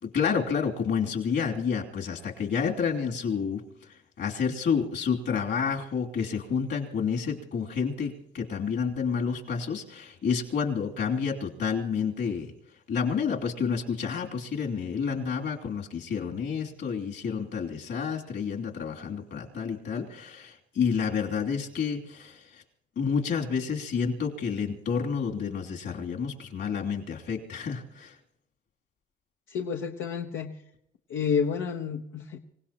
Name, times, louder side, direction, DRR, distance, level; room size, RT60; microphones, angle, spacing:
voice 1, 0.0-12.5 12.9-22.6 23.0-28.1, left 6 dB, 65° left, 1 dB, 2.9 m, -29 dB
voice 2, 29.5-30.5 31.1-32.4, left 6 dB, 85° left, 3 dB, 0.9 m, -30 dB
25.5 x 17.0 x 2.9 m, 0.77 s
cardioid pair, 90°, 20 cm